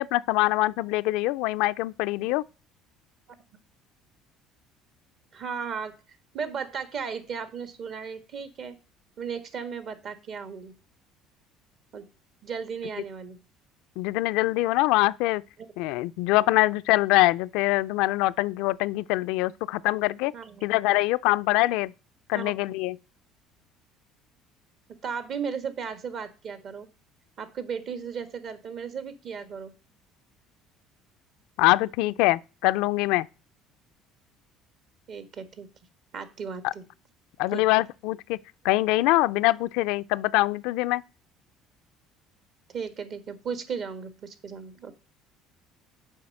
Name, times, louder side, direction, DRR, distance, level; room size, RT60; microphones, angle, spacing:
voice 1, 0.0-2.4 14.0-15.4 15.8-20.3 20.6-21.9 22.3-23.0 31.6-33.3 36.6-36.7 37.4-38.4 38.6-41.0, left 19 dB, 75° left, 0.3 m, -24 dB
voice 2, 5.3-6.0 6.3-8.8 9.2-10.7 11.9-12.1 12.4-13.4 20.3-20.6 22.3-22.5 25.0-26.9 27.4-29.7 35.1-35.7 36.1-36.9 37.5-37.7 42.7-44.9, right 6 dB, 55° right, 1.3 m, -35 dB
7.1 x 4.7 x 6.3 m
supercardioid pair, 80°, 0 cm